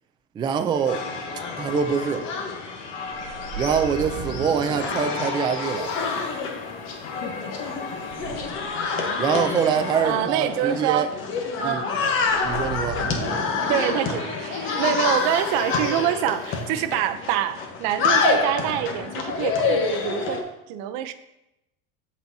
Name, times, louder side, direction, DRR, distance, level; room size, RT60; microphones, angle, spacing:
voice 1, 0.4-1.0 1.5-2.3 3.6-5.9 9.2-11.1 11.6-11.8 12.4-13.0, right 7 dB, 15° right, 7 dB, 0.3 m, -24 dB
sound 1, 0.7-10.1, left 4 dB, 80° left, 1.5 m, -37 dB
sound 2, 0.8-20.4, left 4 dB, 40° left, 1.1 m, -28 dB
sound 3, 3.1-6.3 7.9-8.9 12.2-15.8, right 6 dB, 45° right, 1.2 m, -37 dB
voice 2, 10.0-11.1 11.6-11.9 13.7-14.3 14.7-20.4 20.7-21.1, right 11 dB, 65° right, 11 dB, 0.6 m, -25 dB
12.5 x 4.2 x 2.7 m, 0.89 s
supercardioid pair, 140°, 30 cm